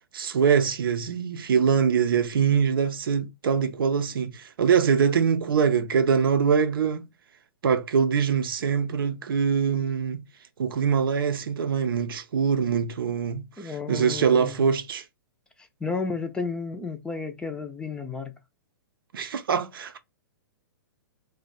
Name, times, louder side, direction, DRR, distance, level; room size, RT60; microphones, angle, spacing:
voice 1, 0.1-7.1 7.6-10.2 10.6-15.0 19.1-20.0, right 6 dB, 75° right, 0.5 m, -23 dB
voice 2, 13.6-14.6 15.8-18.3, left 4 dB, 5° left, 0.5 m, -32 dB
2.5 x 2.2 x 4.0 m
hypercardioid pair, 125°, 12 cm